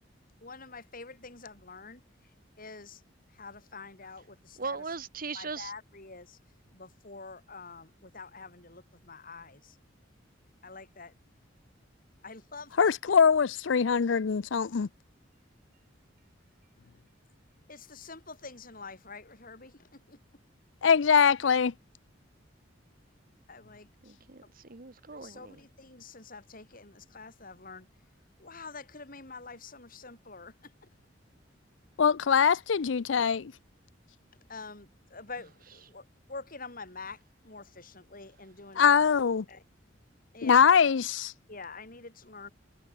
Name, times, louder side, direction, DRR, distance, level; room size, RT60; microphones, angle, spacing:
voice 1, 0.4-3.0 3.3-5.0 5.3-6.4 6.7-9.8 10.6-11.1 12.2-12.9 17.7-20.2 23.5-23.9 24.4-24.5 25.1-27.9 28.4-31.0 34.5-39.0 39.5-39.6 40.3-40.6 41.5-42.5, left 4 dB, 50° left, 5.6 m, -46 dB
voice 2, 4.6-5.7 24.0-24.4 24.7-25.6, right 4 dB, 50° right, 1.4 m, -38 dB
voice 3, 12.8-14.9 20.8-21.7 32.0-33.5 38.8-39.4 40.4-41.3, left 6 dB, 80° left, 0.5 m, -23 dB
head